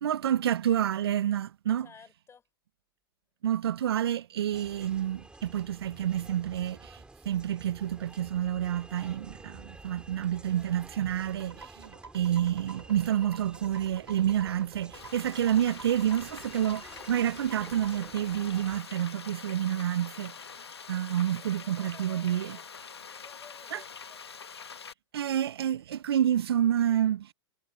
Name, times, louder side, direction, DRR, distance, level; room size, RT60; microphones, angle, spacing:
voice 1, 0.0-1.9 3.4-7.0 7.3-20.3 20.9-22.6 23.7-23.8 25.1-27.3, right 10 dB, 70° right, 0.8 m, -29 dB
voice 2, 1.8-2.4 21.4-22.6 23.0-24.2, left 6 dB, 20° left, 6.6 m, -54 dB
sound 1, 4.5-18.8, right 2 dB, 5° right, 6.6 m, -51 dB
sound 2, 11.2-18.0, right 4 dB, 90° right, 3.8 m, -49 dB
Frying (food), 14.9-24.9, left 6 dB, 85° left, 1.6 m, -45 dB
hypercardioid pair, 105°, 13 cm